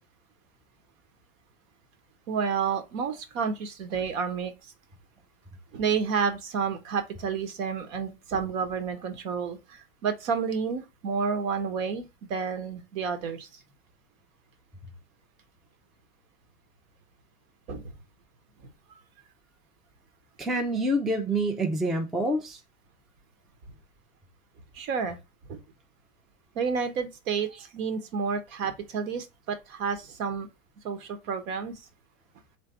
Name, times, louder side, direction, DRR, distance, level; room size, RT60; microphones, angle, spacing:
voice 1, 2.3-4.7 5.7-13.6 17.7-17.8 18.6-19.0 24.7-25.2 25.5-25.6 26.5-30.5 30.8-31.8, right 6 dB, 65° right, 1.1 m, -30 dB
voice 2, 20.4-22.6, right 1 dB, ahead, 0.3 m, -27 dB
3.4 x 3.4 x 4.4 m
hypercardioid pair, 85°, 43 cm